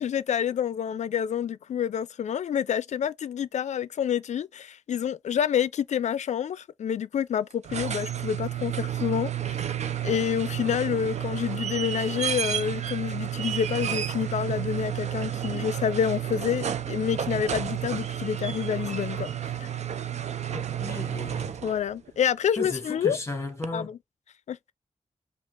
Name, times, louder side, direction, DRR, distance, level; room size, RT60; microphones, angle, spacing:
voice 1, 0.0-9.7 10.0-19.3 19.6-19.7 21.6-23.2 23.7-24.0 24.5-24.7, left 8 dB, 75° left, 0.4 m, -28 dB
sound 1, 7.5-21.9 23.6-23.7, right 10 dB, 70° right, 0.5 m, -31 dB
voice 2, 20.5-21.6 22.6-23.9, left 2 dB, 25° left, 1.3 m, -35 dB
5.1 x 2.3 x 3.8 m
wide cardioid pair, 120°, 12 cm